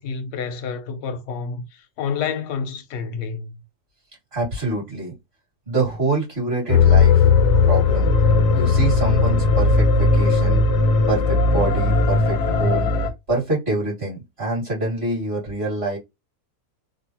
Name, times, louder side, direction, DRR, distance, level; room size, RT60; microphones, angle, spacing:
voice 1, 0.0-3.6, left 6 dB, 60° left, 0.8 m, -29 dB
voice 2, 4.3-5.1 5.7-7.3 7.6-10.8 11.1-16.0, right 2 dB, 40° right, 2.2 m, -26 dB
sound 1, 6.7-13.1, left 4 dB, 85° left, 1.2 m, -17 dB
3.8 x 2.1 x 2.8 m
omnidirectional pair, 1.7 m